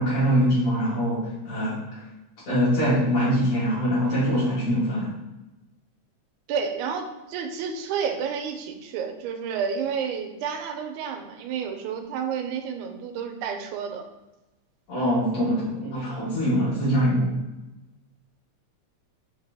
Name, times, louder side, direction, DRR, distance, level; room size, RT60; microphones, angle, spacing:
voice 1, 0.0-2.0 2.5-5.2 14.9-17.4, equal, 55° left, -10 dB, 2.3 m, -23 dB
voice 2, 6.5-14.1, right 6 dB, 85° right, 6 dB, 2.0 m, -30 dB
5.1 x 2.8 x 3.4 m, 1.0 s
omnidirectional pair, 3.4 m